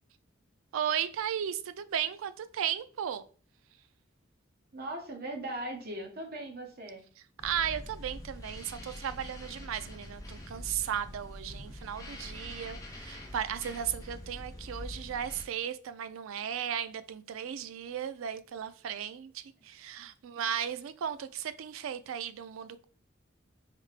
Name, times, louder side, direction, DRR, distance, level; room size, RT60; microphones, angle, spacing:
voice 1, 0.7-3.2 7.4-22.9, right 9 dB, 75° right, 0.3 m, -35 dB
voice 2, 4.7-7.0 20.0-20.1, right 1 dB, 50° right, 0.9 m, -39 dB
sound 1, 7.4-15.4, left 1 dB, 15° left, 0.5 m, -44 dB
3.4 x 2.8 x 3.2 m
head